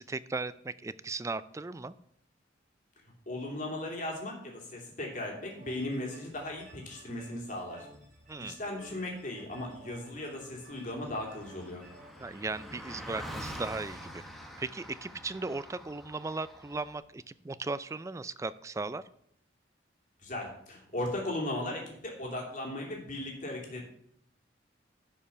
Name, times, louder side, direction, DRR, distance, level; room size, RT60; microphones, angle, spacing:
voice 1, 0.0-1.9 8.3-8.6 12.2-14.2 14.6-19.0, right 3 dB, 15° right, 16 dB, 0.3 m, -37 dB
voice 2, 3.3-7.9 8.4-11.8 20.2-23.8, left 1 dB, 45° left, -1 dB, 2.8 m, -37 dB
sound 1, 5.6-12.7, right 1 dB, 45° right, 3.0 m, -55 dB
Car passing by, 9.9-10.0 10.1-17.0, equal, ahead, 1.1 m, -46 dB
11.0 x 5.4 x 6.0 m, 0.70 s
head